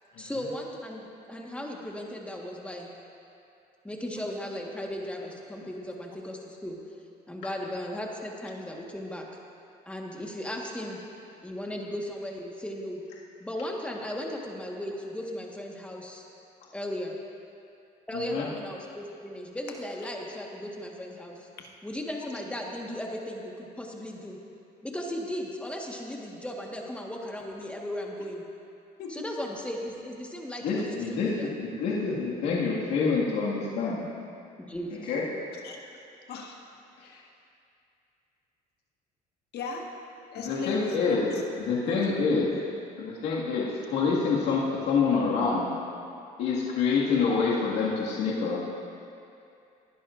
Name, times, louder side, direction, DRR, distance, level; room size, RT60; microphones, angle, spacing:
voice 1, 0.2-2.9 3.8-6.8 7.3-9.3 9.8-11.0 11.4-13.0 13.4-16.2 16.7-17.2 18.1-21.5 21.8-24.4 24.8-28.4 29.1-31.5 34.7-35.1, left 1 dB, 5° left, -1 dB, 1.4 m, -36 dB
voice 2, 18.1-18.5 30.6-31.3 31.6-34.0 35.1-35.2 40.3-41.3 41.6-42.5 43.0-45.7 46.4-48.6, left 5 dB, 90° left, -6 dB, 1.9 m, -27 dB
voice 3, 35.6-36.0 36.3-36.6 37.0-37.3 39.5-39.9 40.3-41.4 41.8-42.0, left 4 dB, 70° left, 1 dB, 1.4 m, -38 dB
19.0 x 10.5 x 2.5 m, 2.6 s
cardioid pair, 110°, 17 cm